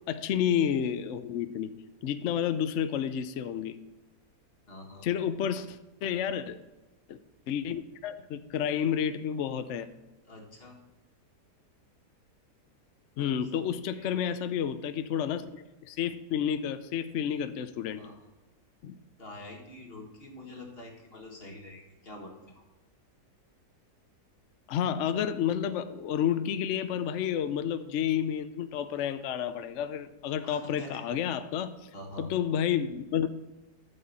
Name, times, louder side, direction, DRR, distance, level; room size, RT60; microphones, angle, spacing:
voice 1, 0.1-1.7 2.0-3.8 5.0-6.6 7.1-7.2 7.5-9.9 13.2-18.1 18.8-18.9 24.7-31.9 32.2-33.3, left 9 dB, 65° left, 10 dB, 0.8 m, -30 dB
voice 2, 4.7-5.1 10.3-10.8 13.2-14.1 18.0-18.2 19.2-22.6 30.4-31.0 31.9-32.3, left 2 dB, 35° left, 1 dB, 1.8 m, -46 dB
12.5 x 7.0 x 4.1 m, 1.1 s
omnidirectional pair, 1.7 m